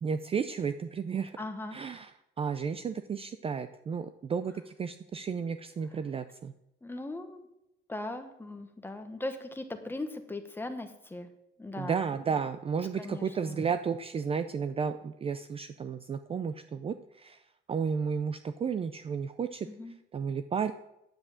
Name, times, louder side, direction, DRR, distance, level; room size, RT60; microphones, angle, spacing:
voice 1, 0.0-1.4 1.7-2.1 2.4-6.5 11.8-17.4 17.7-19.7 20.1-20.7, right 6 dB, 30° right, 11 dB, 0.4 m, -33 dB
voice 2, 1.4-1.8 6.8-7.4 7.9-11.3 11.6-11.9 13.0-13.6 19.6-19.9, left 2 dB, 10° left, 7 dB, 1.1 m, -39 dB
9.8 x 7.7 x 7.6 m, 0.86 s
cardioid pair, 155°, 21 cm